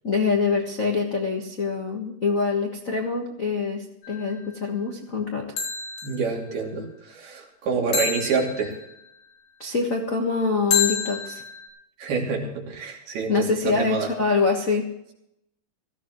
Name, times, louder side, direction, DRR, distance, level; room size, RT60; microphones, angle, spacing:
voice 1, 0.0-5.4 9.6-11.4 13.3-14.9, left 4 dB, 60° left, 1 dB, 0.8 m, -25 dB
sound 1, 4.0-4.4 5.6-6.3 7.9-9.0 10.7-11.7, left 6 dB, 90° left, 4.9 m, -28 dB
voice 2, 6.0-8.7 12.0-14.1, right 5 dB, 85° right, -1 dB, 4.8 m, -27 dB
18.0 x 15.0 x 3.1 m, 0.82 s
omnidirectional pair, 4.3 m